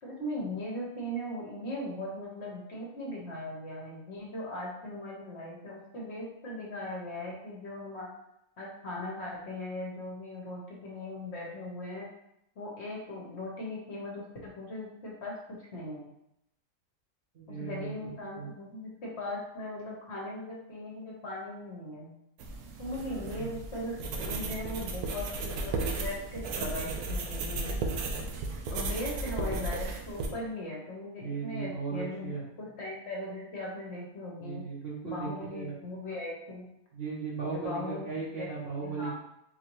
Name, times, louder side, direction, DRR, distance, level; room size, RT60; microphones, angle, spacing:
voice 1, 0.0-8.1 8.6-12.1 12.6-16.1 17.5-22.1 22.8-27.8 28.7-34.6 35.0-36.6 37.4-38.1 38.4-39.1, left 1 dB, 55° left, -3 dB, 1.0 m, -39 dB
voice 2, 17.3-18.5 23.1-23.5 31.2-32.5 34.4-35.7 36.9-39.1, right 4 dB, 55° right, -5 dB, 0.8 m, -37 dB
sound 1, 22.4-30.3, right 3 dB, 85° right, 1.1 m, -34 dB
3.9 x 2.7 x 2.9 m, 0.81 s
omnidirectional pair, 1.6 m